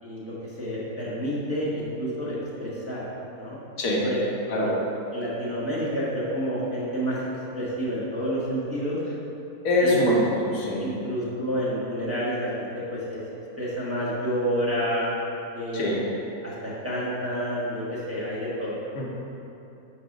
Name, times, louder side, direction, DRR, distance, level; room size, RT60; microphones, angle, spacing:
voice 1, 0.0-3.0 3.3-3.6 4.0-4.2 4.5-4.7 5.1-7.2 7.5-9.0 9.8-10.0 10.8-13.2 13.6-15.1 15.5-16.0 16.4-18.8, equal, 10° right, -8 dB, 1.1 m, -29 dB
voice 2, 9.6-10.9 15.7-16.0 19.0-19.1, left 1 dB, 75° left, -4 dB, 1.4 m, -23 dB
6.1 x 4.7 x 5.1 m, 2.9 s
omnidirectional pair, 1.5 m